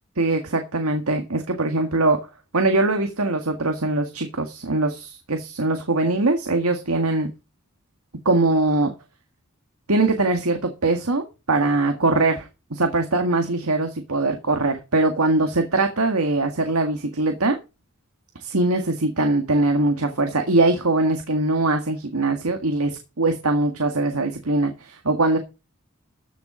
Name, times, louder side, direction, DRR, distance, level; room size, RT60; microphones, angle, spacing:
voice 1, 0.2-2.2 2.5-7.3 8.3-8.9 9.9-17.6 18.4-25.4, right 2 dB, 80° right, 5 dB, 1.8 m, -22 dB
14.5 x 7.1 x 5.0 m, 0.28 s
head